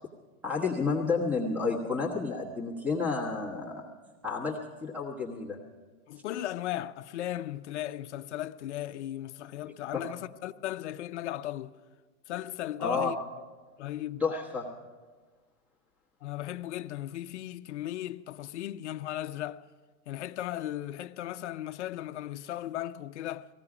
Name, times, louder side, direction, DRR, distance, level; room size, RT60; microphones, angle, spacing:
voice 1, 0.4-3.9 4.2-5.6 9.9-10.1 12.8-13.1 14.2-14.7, left 4 dB, 5° right, 1.1 m, -30 dB
voice 2, 6.1-11.8 12.3-13.2 13.8-14.2 16.2-19.6 20.1-23.5, left 13 dB, 55° left, 0.6 m, -36 dB
18.5 x 15.5 x 4.9 m
hypercardioid pair, 155°, 44 cm